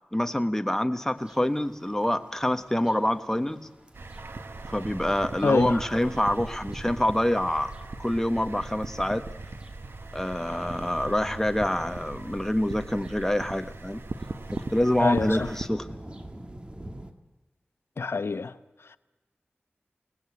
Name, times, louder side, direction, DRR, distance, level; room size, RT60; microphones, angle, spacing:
voice 1, 0.1-3.7 4.7-7.7 8.0-9.3 10.1-14.0 14.5-15.9, left 1 dB, 10° left, 1.4 m, -26 dB
sound 1, 1.2-17.1, right 1 dB, 25° right, 2.1 m, -49 dB
sound 2, 3.9-15.7, right 3 dB, 75° right, 1.3 m, -39 dB
voice 2, 5.4-5.8 14.9-15.5 18.0-18.6 18.8-19.0, left 4 dB, 85° left, 0.9 m, -26 dB
28.0 x 19.0 x 8.6 m
wide cardioid pair, 70°, 4 cm